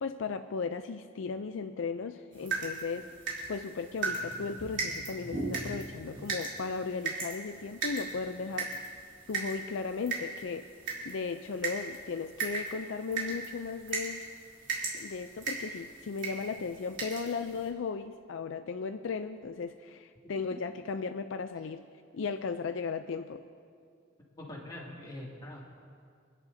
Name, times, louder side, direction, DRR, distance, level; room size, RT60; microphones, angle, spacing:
voice 1, 0.0-3.1 3.5-8.7 9.3-10.7 11.1-14.2 14.9-21.8 22.1-23.4, left 5 dB, 70° left, 9 dB, 0.4 m, -36 dB
sound 1, 2.3-17.7, right 3 dB, 65° right, 3.2 m, -38 dB
voice 2, 24.4-25.6, left 1 dB, 20° left, -4 dB, 2.3 m, -43 dB
26.5 x 11.0 x 2.7 m, 2.2 s
head